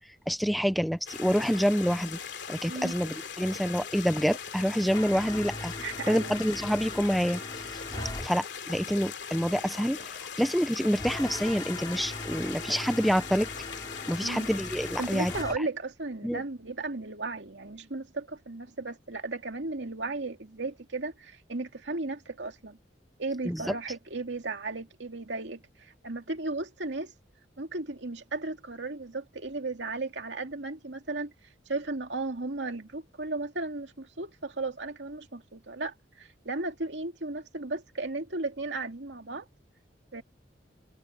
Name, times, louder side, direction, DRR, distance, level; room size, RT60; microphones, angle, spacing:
voice 1, 0.3-2.2 2.5-5.7 6.1-7.4 8.2-13.5 14.1-15.3 16.2-16.4 23.5-23.7, equal, ahead, 0.5 m, -27 dB
sound 1, 1.1-15.4, left 7 dB, 70° left, 3.0 m, -40 dB
voice 2, 2.6-2.9 5.8-6.4 7.9-8.2 14.2-14.5 15.0-22.8 23.2-27.1 27.6-31.3 31.7-39.5 40.1-40.2, right 3 dB, 75° right, 2.4 m, -35 dB
sound 2, 4.9-8.3 11.0-15.6, left 1 dB, 20° left, 4.1 m, -40 dB
open air
head